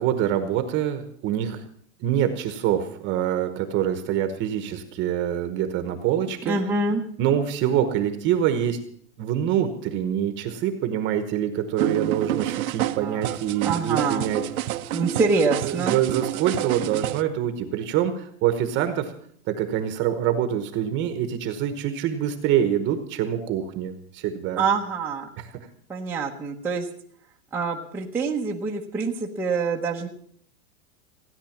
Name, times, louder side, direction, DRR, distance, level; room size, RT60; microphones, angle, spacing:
voice 1, 0.0-1.6 2.0-6.6 7.2-8.8 9.2-14.7 15.6-19.1 19.5-24.6 25.4-25.6, right 10 dB, 25° right, 8 dB, 1.1 m, -25 dB
voice 2, 6.5-7.0 13.0-13.3 13.6-14.3 14.9-16.0 24.6-25.3 25.9-26.9 27.5-30.1, right 4 dB, 5° right, -3 dB, 0.8 m, -25 dB
sound 1, 11.8-17.2, right 14 dB, 80° right, 0.9 m, -29 dB
16.5 x 10.0 x 7.2 m, 0.62 s
supercardioid pair, 160°, 42 cm